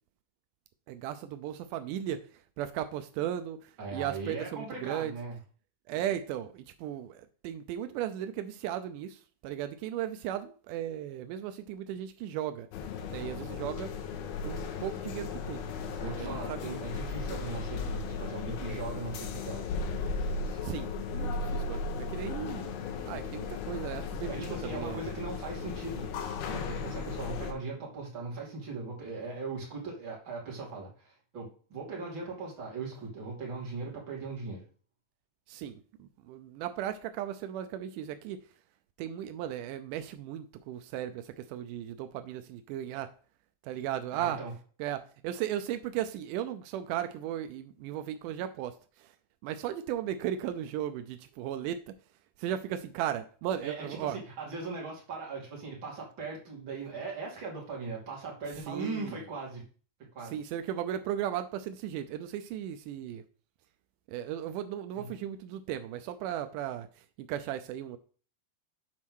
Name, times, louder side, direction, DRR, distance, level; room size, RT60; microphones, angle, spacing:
voice 1, 0.9-2.3 2.6-5.1 5.9-12.7 13.1-13.9 14.4-15.6 16.0-16.6 20.6-22.8 23.1-25.1 35.5-38.4 39.0-43.1 43.6-44.4 44.8-49.1 49.4-52.0 52.4-54.2 58.7-59.2 60.2-63.2 64.1-68.0, right 11 dB, 85° right, 1.8 m, -36 dB
voice 2, 3.8-5.4 16.0-19.7 20.2-20.6 24.3-26.1 26.4-34.6 44.1-44.5 53.6-59.6 60.1-60.3 65.0-65.1, right 3 dB, 35° right, 2.9 m, -39 dB
sound 1, 12.7-27.5, left 4 dB, 85° left, 2.9 m, -36 dB
7.5 x 4.2 x 6.2 m
omnidirectional pair, 4.3 m